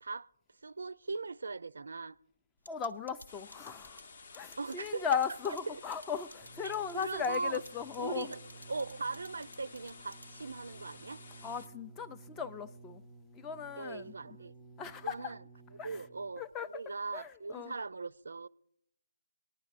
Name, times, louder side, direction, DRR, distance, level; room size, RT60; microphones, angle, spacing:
voice 1, 0.6-2.2 4.6-5.1 5.7-5.8 6.6-7.6 8.0-8.4 8.7-11.2 13.8-14.5 15.0-15.4 15.7-18.5, right 4 dB, 65° right, 0.4 m, -39 dB
sound 1, 2.7-10.6, left 1 dB, 90° left, 1.3 m, -54 dB
voice 2, 2.7-4.0 4.3-8.3 11.4-13.0 13.3-14.4 14.8-15.3 15.8-16.0 16.4-16.8 17.1-17.7, left 7 dB, 15° left, 0.3 m, -37 dB
sound 2, 3.3-11.7, left 4 dB, 50° left, 0.7 m, -53 dB
sound 3, 6.4-16.5 17.3-17.4, right 3 dB, 5° right, 0.7 m, -55 dB
19.5 x 11.0 x 2.5 m
figure-of-eight pair, 150°, 0 cm